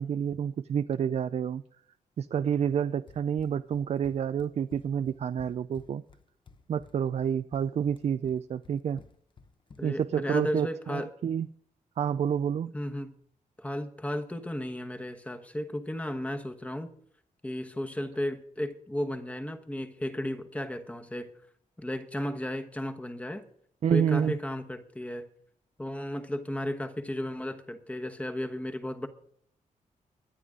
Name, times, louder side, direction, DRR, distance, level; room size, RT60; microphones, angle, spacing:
voice 1, 0.0-1.6 2.2-6.0 6.7-9.0 9.8-11.5 12.0-12.7 23.8-24.4, right 8 dB, 50° right, 0.4 m, -29 dB
Run, 3.1-10.1, left 4 dB, 35° left, 1.0 m, -54 dB
voice 2, 9.8-11.1 12.7-13.1 13.6-16.9 17.4-21.3 21.8-23.4 23.9-25.3 25.8-29.1, left 1 dB, 10° left, 1.2 m, -34 dB
23.0 x 9.7 x 3.8 m
wide cardioid pair, 155°, 14 cm